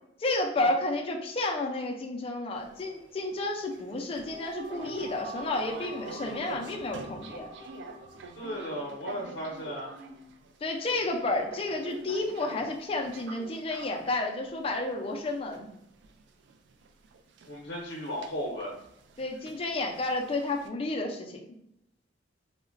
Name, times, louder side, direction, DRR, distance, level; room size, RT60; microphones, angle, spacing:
voice 1, 0.2-7.5 10.6-15.7 19.2-21.4, left 2 dB, 30° left, 2 dB, 0.3 m, -31 dB
sound 1, 2.5-20.7, right 4 dB, 70° right, 0.3 m, -48 dB
sound 2, 4.0-9.3, right 1 dB, 40° right, 0.9 m, -46 dB
voice 2, 8.4-9.9 17.5-18.7, equal, 75° left, -3 dB, 0.6 m, -35 dB
3.7 x 2.1 x 2.5 m, 0.80 s
head